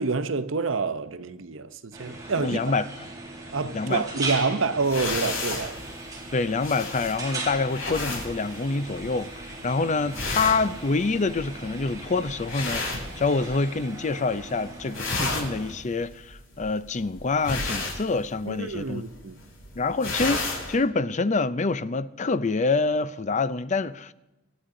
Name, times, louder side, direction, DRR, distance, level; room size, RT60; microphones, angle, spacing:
voice 1, 0.0-2.8 3.5-5.8 18.4-19.4, right 4 dB, 75° right, 0.9 m, -27 dB
sound 1, 1.9-15.7, right 2 dB, 20° right, 3.7 m, -39 dB
voice 2, 2.4-2.8 3.7-4.0 6.3-19.0 19.8-24.1, left 3 dB, 40° left, 0.6 m, -26 dB
sound 2, 4.8-13.8 14.1-14.5 14.8-20.7, left 3 dB, 75° left, 7.0 m, -33 dB
25.5 x 11.5 x 3.8 m
head